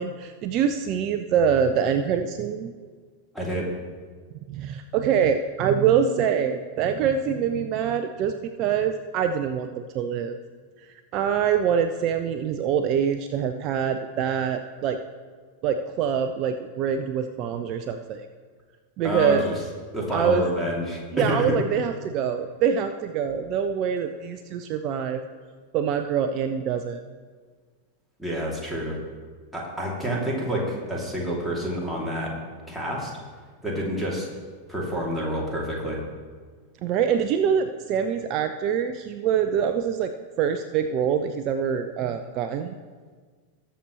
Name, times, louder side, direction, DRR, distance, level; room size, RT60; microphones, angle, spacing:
voice 1, 0.0-2.7 4.5-10.4 11.1-15.0 15.6-18.3 19.0-19.4 20.1-20.5 21.1-25.2 25.7-27.0 36.8-40.1 40.4-42.8, right 7 dB, 40° right, 8 dB, 0.5 m, -25 dB
voice 2, 3.3-3.7 19.0-19.6 19.9-21.5 28.2-29.0 29.5-32.3 32.7-33.1 33.6-34.3 34.7-36.0, equal, ahead, -4 dB, 2.8 m, -28 dB
19.5 x 6.9 x 3.2 m, 1.6 s
figure-of-eight pair, 90°, 0 cm